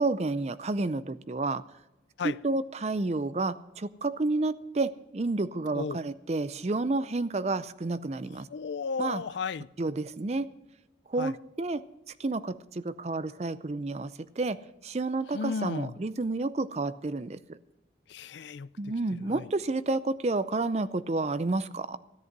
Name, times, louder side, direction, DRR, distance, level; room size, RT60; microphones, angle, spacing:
voice 1, 0.0-1.6 2.2-8.5 9.0-9.2 9.8-10.5 11.1-11.8 12.2-14.6 14.8-17.6 18.8-22.0, right 3 dB, 35° right, 0.5 m, -30 dB
voice 2, 8.5-9.7 11.2-11.3 15.3-15.9 18.1-18.7 19.3-19.4, left 5 dB, 80° left, 0.4 m, -33 dB
14.0 x 10.5 x 6.0 m
head